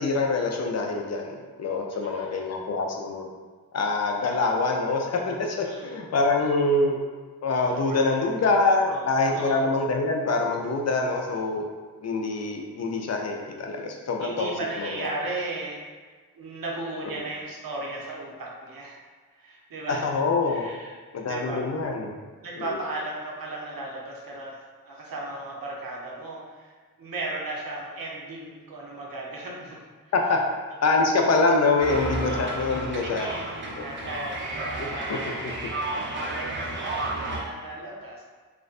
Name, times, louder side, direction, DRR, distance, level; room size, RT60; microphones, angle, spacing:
voice 1, 0.0-3.3 3.7-7.0 7.4-11.7 12.0-14.5 14.8-15.1 19.9-20.7 21.1-22.1 22.5-22.8 30.1-30.4 30.8-33.3 33.8-33.9 34.8-35.2 35.4-35.5, left 3 dB, 50° left, 1 dB, 0.4 m, -25 dB
voice 2, 2.0-2.4 5.6-6.0 7.7-8.5 8.8-9.0 9.3-9.6 14.2-15.8 16.3-19.0 19.4-20.0 20.5-20.9 21.2-21.7 22.4-24.6 24.8-30.1 33.0-35.4 35.8-38.3, right 2 dB, 70° right, -3 dB, 0.7 m, -36 dB
sound 1, 31.8-37.4, right 2 dB, 35° right, 0.5 m, -32 dB
2.5 x 2.1 x 2.4 m, 1.5 s
cardioid pair, 55°, 35 cm